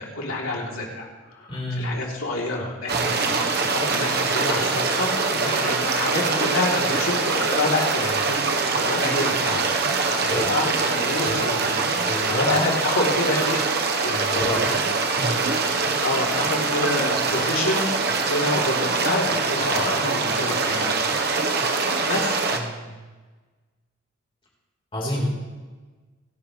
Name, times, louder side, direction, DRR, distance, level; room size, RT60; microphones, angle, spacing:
voice 1, 0.0-9.8 10.1-14.7 15.3-15.6 16.0-21.3 21.7-22.4, left 2 dB, 85° left, -2 dB, 3.5 m, -28 dB
voice 2, 1.5-2.0 2.9-3.0 10.3-10.5 11.2-11.4 12.1-12.5 14.3-14.6 15.2-15.6 22.5-22.9 24.9-25.3, left 1 dB, 25° left, -3 dB, 4.3 m, -29 dB
sound 1, 2.9-22.6, right 4 dB, 50° right, 1.2 m, -23 dB
27.0 x 11.5 x 3.4 m, 1.3 s
head